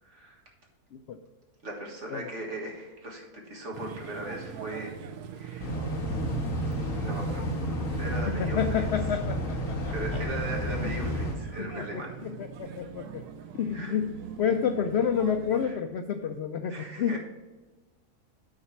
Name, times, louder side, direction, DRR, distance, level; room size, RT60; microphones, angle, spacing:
voice 1, 0.0-0.4 1.6-4.9 5.3-5.7 6.6-7.6 7.9-8.6 9.9-12.1 13.7-14.0 15.6-15.8 16.6-17.2, right 1 dB, 50° right, 0 dB, 1.8 m, -39 dB
sound 1, 3.7-15.7, right 7 dB, 85° right, 1.2 m, -42 dB
sound 2, 5.6-11.4, equal, 60° left, 1.5 m, -31 dB
voice 2, 8.3-9.9 10.8-10.9 11.6-13.2 13.6-17.2, left 7 dB, 80° left, 8 dB, 0.6 m, -30 dB
8.8 x 4.2 x 5.8 m, 1.2 s
omnidirectional pair, 1.7 m